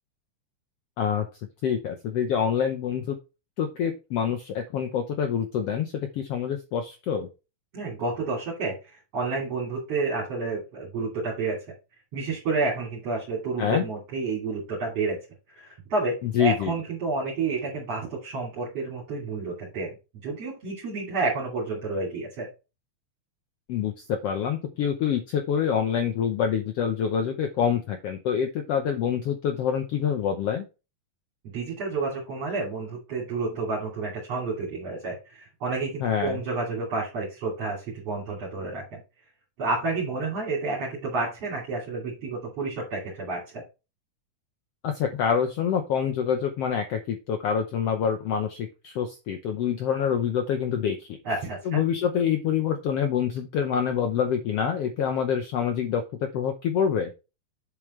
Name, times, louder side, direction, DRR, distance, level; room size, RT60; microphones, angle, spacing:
voice 1, 1.6-3.2 3.6-7.3 13.6-13.8 16.2-16.7 23.7-30.6 36.0-36.4 44.8-51.1 51.6-57.1, left 8 dB, 75° left, 6 dB, 1.4 m, -26 dB
voice 2, 7.7-11.6 12.1-15.2 15.6-19.9 20.2-22.5 31.4-39.0 39.6-43.6 51.3-51.8, right 3 dB, 50° right, -4 dB, 3.7 m, -30 dB
8.4 x 7.1 x 3.2 m, 0.29 s
omnidirectional pair, 3.8 m